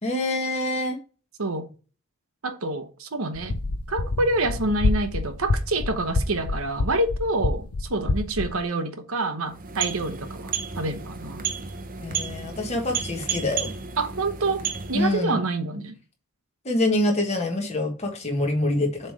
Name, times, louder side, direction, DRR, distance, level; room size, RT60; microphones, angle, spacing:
voice 1, 0.0-1.0 12.0-13.7 14.9-15.4 16.6-19.1, left 1 dB, 30° left, 1.4 m, -25 dB
voice 2, 2.4-3.5 3.9-11.5 14.0-15.9, right 2 dB, 75° right, 0.9 m, -27 dB
sound 1, 3.3-8.6, left 2 dB, 90° left, 0.7 m, -27 dB
sound 2, 9.4-15.2, right 6 dB, 40° right, 0.7 m, -32 dB
7.4 x 3.3 x 4.7 m
head